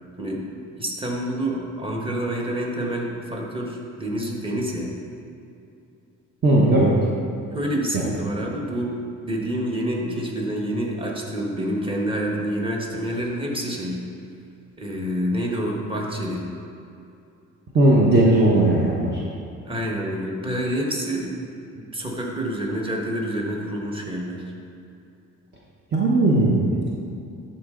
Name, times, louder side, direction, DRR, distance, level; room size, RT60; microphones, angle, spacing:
voice 1, 0.8-4.9 7.5-14.0 14.8-16.5 19.6-21.4 21.7-24.5, right 1 dB, 15° right, -2 dB, 1.5 m, -27 dB
voice 2, 6.4-6.9 7.9-8.0 17.7-19.2 25.9-26.8, right 1 dB, 35° right, -5 dB, 1.1 m, -17 dB
12.0 x 4.3 x 3.8 m, 2.6 s
cardioid pair, 90°, 30 cm